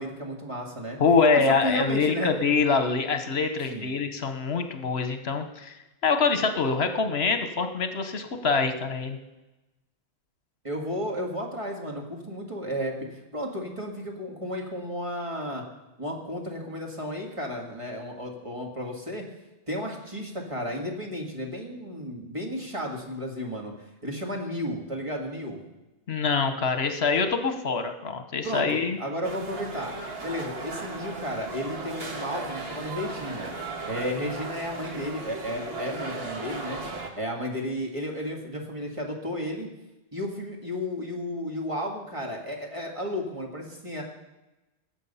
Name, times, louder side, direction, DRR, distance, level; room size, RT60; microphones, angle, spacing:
voice 1, 0.0-1.0 1.3-2.3 3.7-3.9 10.6-15.6 16.0-19.2 19.7-23.7 24.0-25.6 28.4-29.9 30.2-33.5 33.9-36.8 37.2-39.7 40.1-44.0, equal, 30° right, 0 dB, 2.2 m, -33 dB
voice 2, 1.0-5.7 6.0-9.2 26.1-29.0, left 4 dB, 70° left, 7 dB, 1.2 m, -25 dB
sound 1, 29.2-37.1, right 3 dB, 65° right, 1.8 m, -36 dB
21.0 x 7.6 x 5.6 m, 1.0 s
omnidirectional pair, 1.1 m